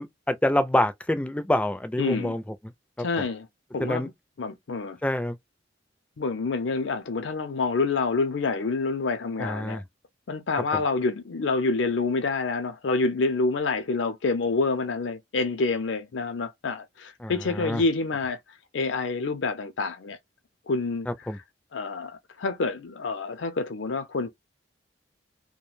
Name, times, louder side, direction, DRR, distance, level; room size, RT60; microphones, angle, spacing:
voice 1, 0.0-2.4 3.0-3.1 3.8-4.1 5.0-5.4 9.4-9.8 17.2-17.3 17.6-17.8 21.1-21.4, left 1 dB, 5° left, 0.3 m, -26 dB
voice 2, 2.0-2.4 3.0-3.5 3.7-4.1 4.4-5.0 6.2-9.8 10.3-18.4 18.7-20.2 20.7-21.4 21.7-24.3, left 3 dB, 80° left, 0.5 m, -27 dB
2.3 x 2.1 x 3.1 m
head